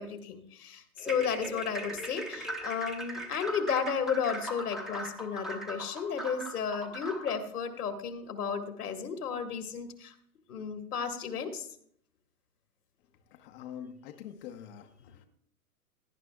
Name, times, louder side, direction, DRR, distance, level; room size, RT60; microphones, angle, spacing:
voice 1, 0.0-10.1 10.5-11.7, left 6 dB, 70° left, 6 dB, 1.8 m, -33 dB
sound 1, 1.0-7.4, right 1 dB, ahead, 0.9 m, -40 dB
voice 2, 13.3-15.2, left 9 dB, 35° left, 5 dB, 0.8 m, -45 dB
17.5 x 10.5 x 2.3 m, 0.65 s
hypercardioid pair, 120°, 46 cm